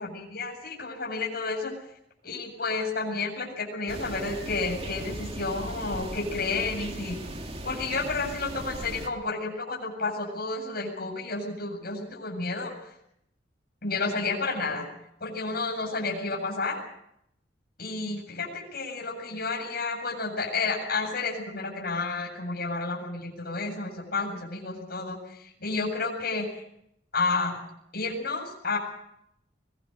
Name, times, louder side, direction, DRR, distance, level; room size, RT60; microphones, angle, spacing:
voice 1, 0.0-1.7 2.2-7.2 7.6-12.7 13.8-14.9 15.2-16.8 17.8-26.6 27.1-27.6 27.9-28.8, left 3 dB, 55° left, 0 dB, 7.9 m, -31 dB
sound 1, 3.9-9.1, right 1 dB, 30° right, 2.3 m, -38 dB
24.0 x 20.0 x 6.6 m, 0.75 s
head